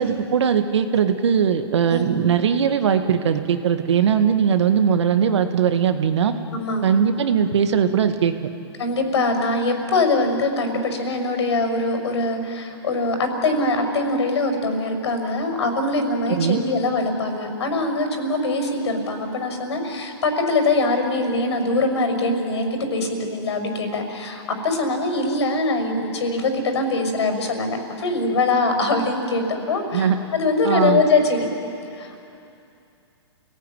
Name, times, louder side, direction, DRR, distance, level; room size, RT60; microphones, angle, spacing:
voice 1, 0.0-6.3 6.8-8.3 16.3-16.6 29.9-30.2 30.6-31.0, right 7 dB, 75° right, 8 dB, 1.9 m, -20 dB
voice 2, 1.9-2.2 6.5-6.8 8.8-31.5 32.0-32.2, left 2 dB, 70° left, 5 dB, 6.1 m, -23 dB
30.0 x 18.5 x 9.3 m, 2.7 s
hypercardioid pair, 145°, 15 cm